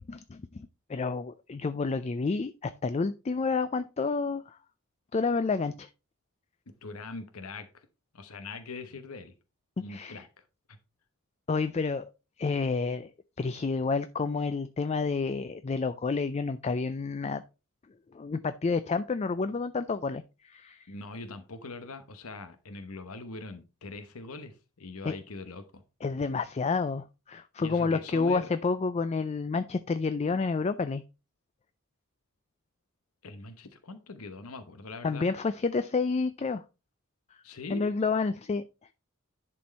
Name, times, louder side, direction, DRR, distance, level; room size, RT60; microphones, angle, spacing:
voice 1, 0.1-4.6 5.1-5.9 9.9-10.2 11.5-12.0 12.4-13.1 13.4-17.4 18.1-20.9 25.0-25.2 26.0-31.0 35.0-36.6 37.7-38.6, left 4 dB, 30° left, 0.4 m, -29 dB
voice 2, 6.7-7.9 8.1-9.3 9.8-10.8 20.9-25.8 27.6-28.5 33.2-35.3 37.4-37.8, left 3 dB, 90° left, 1.0 m, -42 dB
10.5 x 4.4 x 4.1 m
head